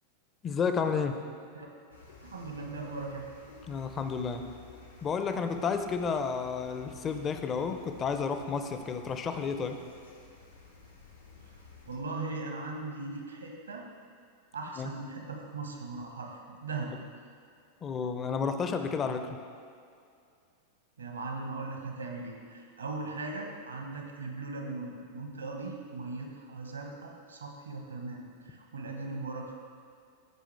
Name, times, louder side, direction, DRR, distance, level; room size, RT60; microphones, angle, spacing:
voice 1, 0.4-1.2 3.7-4.5 5.0-9.8 14.8-14.9 17.8-19.4, left 5 dB, 25° left, 7 dB, 0.5 m, -31 dB
sound 1, 1.9-12.0, left 4 dB, 80° left, 1.2 m, -53 dB
voice 2, 2.2-3.3 11.9-13.9 14.5-16.9 21.0-29.5, right 3 dB, 75° right, 2 dB, 1.1 m, -39 dB
14.5 x 5.0 x 3.3 m, 2.4 s
figure-of-eight pair, 90°, 0 cm